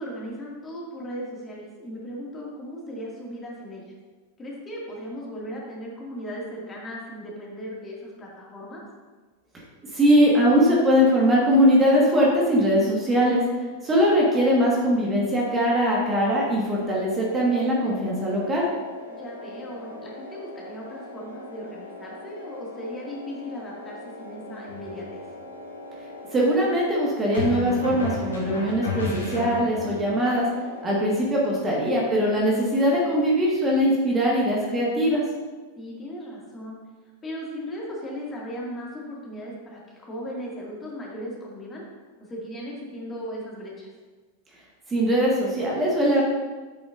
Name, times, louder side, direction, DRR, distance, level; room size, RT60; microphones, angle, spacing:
voice 1, 0.0-3.8 4.4-8.8 19.1-25.2 31.3-31.7 35.8-36.8 37.2-41.8 42.3-43.9, equal, 20° left, -4 dB, 2.2 m, -37 dB
voice 2, 9.9-13.4 13.8-18.6 26.3-30.4 30.8-35.2 44.9-46.2, equal, 20° right, -4 dB, 1.6 m, -21 dB
sound 1, 16.7-31.1, left 1 dB, 70° right, 1.6 m, -41 dB
sound 2, 24.7-24.9 27.3-30.0, left 1 dB, 70° left, 2.2 m, -30 dB
8.3 x 7.9 x 2.6 m, 1.3 s
figure-of-eight pair, 90°, 0 cm